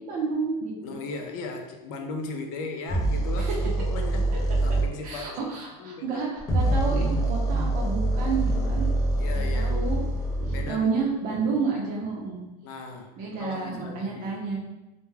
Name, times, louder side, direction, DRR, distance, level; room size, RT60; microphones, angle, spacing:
voice 1, 0.0-1.0 3.4-3.6 5.0-8.9 9.3-10.0 10.4-12.4 13.2-14.6, right 4 dB, 50° right, -2 dB, 0.6 m, -30 dB
voice 2, 0.8-5.5 5.8-6.2 6.7-7.0 9.2-9.9 10.5-10.9 12.6-14.4, left 3 dB, 70° left, 3 dB, 0.5 m, -37 dB
sound 1, 2.9-4.9 6.4-10.7, right 1 dB, 20° left, 0.4 m, -25 dB
2.2 x 2.2 x 3.2 m, 1.0 s
supercardioid pair, 140°, 19 cm